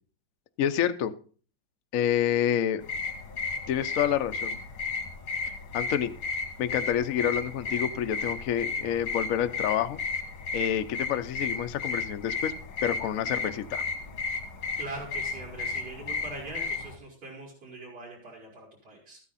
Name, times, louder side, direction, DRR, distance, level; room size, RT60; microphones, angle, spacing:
voice 1, 0.6-1.1 1.9-2.8 3.7-4.6 5.7-6.1 6.6-10.0 10.5-12.5 12.8-13.8, left 10 dB, 60° left, 9 dB, 0.9 m, -28 dB
sound 1, 2.8-16.9, left 4 dB, 85° left, 2.8 m, -34 dB
voice 2, 14.8-19.2, right 2 dB, 80° right, -9 dB, 5.6 m, -42 dB
14.0 x 9.8 x 4.1 m, 0.41 s
omnidirectional pair, 2.2 m